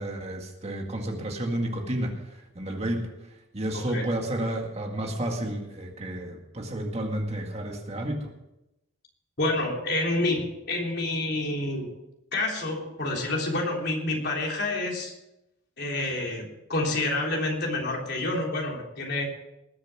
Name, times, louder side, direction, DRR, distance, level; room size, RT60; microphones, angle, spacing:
voice 1, 0.0-3.1 3.5-8.3, right 1 dB, 35° right, 2 dB, 2.0 m, -31 dB
voice 2, 3.7-4.1 9.4-11.9 12.3-15.1 15.8-19.3, left 2 dB, 55° left, -1 dB, 3.6 m, -28 dB
20.0 x 7.4 x 6.1 m, 0.89 s
head